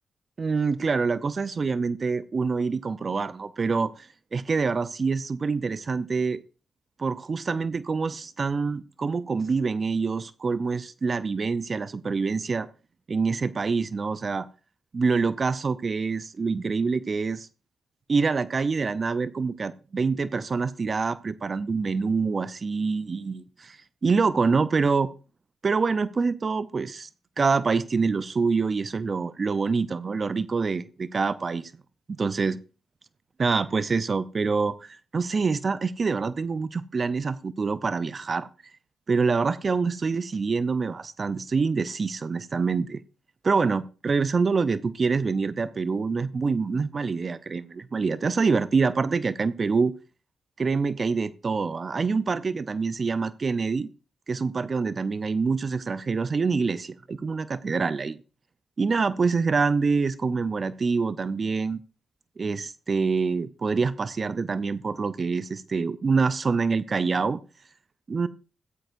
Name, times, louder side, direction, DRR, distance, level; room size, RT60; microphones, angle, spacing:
voice 1, 0.4-6.4 7.0-12.7 13.1-14.5 14.9-17.5 18.1-25.1 25.6-27.1 27.4-31.7 32.1-32.6 33.4-38.5 39.1-43.0 43.4-49.9 50.6-53.9 54.3-58.2 58.8-61.8 62.4-67.4 68.1-68.3, right 4 dB, 50° right, 0.6 m, -26 dB
15.0 x 12.5 x 2.6 m
supercardioid pair, 45°, 0 cm